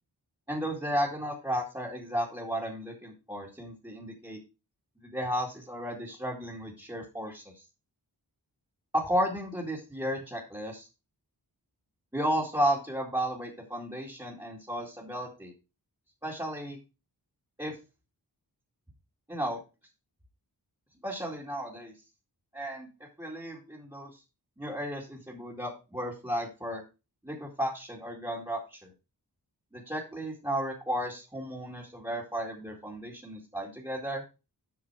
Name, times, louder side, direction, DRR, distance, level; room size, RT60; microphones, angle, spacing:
voice 1, 0.5-4.4 5.0-7.6 8.9-10.9 12.1-15.5 16.2-16.8 17.6-17.8 19.3-19.6 21.0-21.9 22.5-22.9 23.2-24.1 24.6-26.8 27.2-28.9 29.7-34.2, equal, 10° right, -3 dB, 2.2 m, -33 dB
7.7 x 5.9 x 4.8 m, 0.29 s
wide cardioid pair, 50°, 42 cm